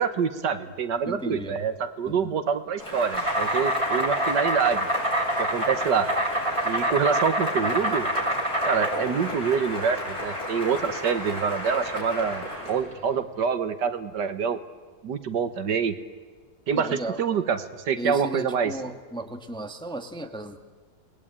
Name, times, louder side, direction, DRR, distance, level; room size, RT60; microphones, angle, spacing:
voice 1, 0.0-4.9 5.4-6.1 6.7-8.1 8.7-14.6 15.0-16.0 16.7-18.7, right 6 dB, 65° right, 11 dB, 1.7 m, -26 dB
voice 2, 1.0-1.6 2.1-2.3 16.7-17.2 18.0-20.6, right 1 dB, 5° left, 6 dB, 1.2 m, -35 dB
Cheering / Applause, 2.8-12.8, left 1 dB, 55° left, 8.0 m, -33 dB
Insect, 3.1-13.1, right 1 dB, 15° right, 2.7 m, -27 dB
28.0 x 20.0 x 8.8 m, 1.5 s
omnidirectional pair, 2.0 m